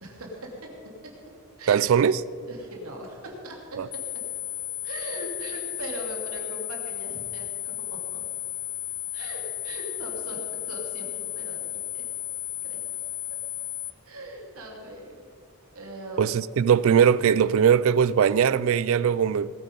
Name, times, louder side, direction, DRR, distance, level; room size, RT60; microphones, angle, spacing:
voice 1, 0.0-0.7 1.0-1.1 1.6-2.0 2.5-4.0 4.8-7.5 7.8-8.2 9.1-12.0 12.6-12.8 14.0-15.1 15.7-16.3, right 1 dB, 85° right, 0 dB, 2.8 m, -39 dB
voice 2, 1.7-2.2 3.8-3.9 16.2-19.6, right 7 dB, 70° right, 19 dB, 0.3 m, -20 dB
sound 1, 3.9-13.9, left 16 dB, 50° left, 0.4 m, -34 dB
19.5 x 9.2 x 5.3 m, 2.4 s
head